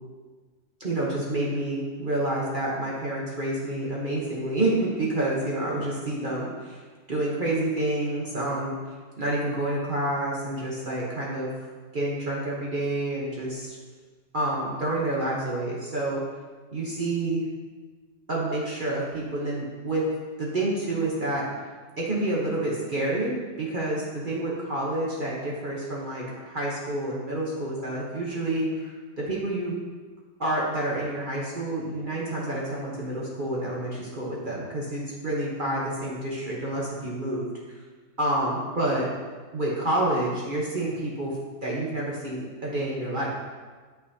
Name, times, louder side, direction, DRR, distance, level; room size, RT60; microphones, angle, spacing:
voice 1, 0.8-6.8 7.1-11.5 11.9-13.8 14.3-16.2 16.7-17.4 18.3-20.1 20.4-21.5 22.0-28.9 29.2-29.8 30.4-37.5 38.2-39.1 39.5-41.3 41.6-43.3, right 1 dB, 45° right, -5 dB, 0.6 m, -28 dB
8.0 x 6.0 x 2.7 m, 1.4 s
omnidirectional pair, 2.1 m